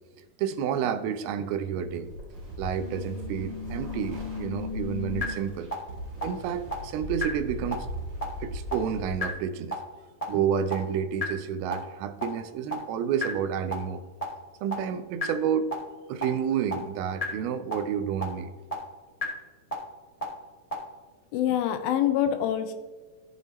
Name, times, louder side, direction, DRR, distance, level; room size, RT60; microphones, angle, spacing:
voice 1, 0.2-2.1 2.6-5.7 6.2-7.9 8.4-9.7 10.3-14.0 14.6-15.7 16.1-18.5, right 8 dB, 85° right, 10 dB, 2.5 m, -30 dB
sound 1, 1.8-9.1, left 1 dB, 30° right, 3.4 m, -39 dB
sound 2, 2.8-5.2 5.7-5.8 6.2-6.3 6.7-6.8 7.2-7.3 7.7-7.8 8.2-8.3 8.7-8.8 9.2-9.3 9.7-9.8 10.2-10.3 10.7-10.8 11.2-11.3 11.7-11.8 12.2-12.3 12.7-12.8 13.2-13.3 13.7-13.8 14.2-14.3 14.7-14.8 15.2-15.3 15.7-15.8 16.2-16.3 16.7-16.8 17.2-17.3 17.7-17.8 18.2-18.3 18.7-18.8 19.2-19.3 19.7-19.8 20.2-20.3 20.7-20.8, left 2 dB, 25° left, 0.8 m, -33 dB
voice 2, 21.3-22.7, left 10 dB, 85° left, 8 dB, 2.4 m, -25 dB
15.0 x 6.9 x 3.1 m, 1.4 s
omnidirectional pair, 4.4 m